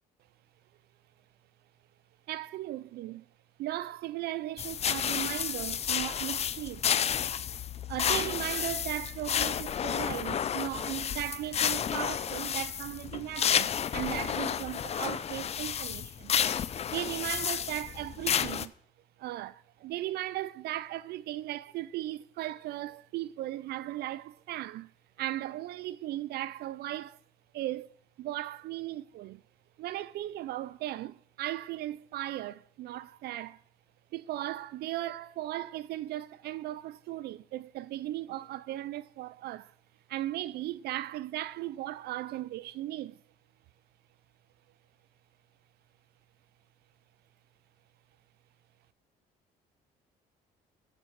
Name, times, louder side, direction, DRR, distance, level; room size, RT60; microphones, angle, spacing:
voice 1, 2.3-3.2 3.6-6.9 7.9-16.4 16.9-18.7 19.2-24.9 25.2-27.2 27.5-27.9 28.2-29.4 29.8-33.6 34.1-39.7 40.1-43.2, right 14 dB, 70° right, 0.4 m, -37 dB
sound 1, 4.6-18.7, left 8 dB, 40° left, 0.6 m, -31 dB
15.0 x 7.4 x 5.7 m
cardioid pair, 110°, 17 cm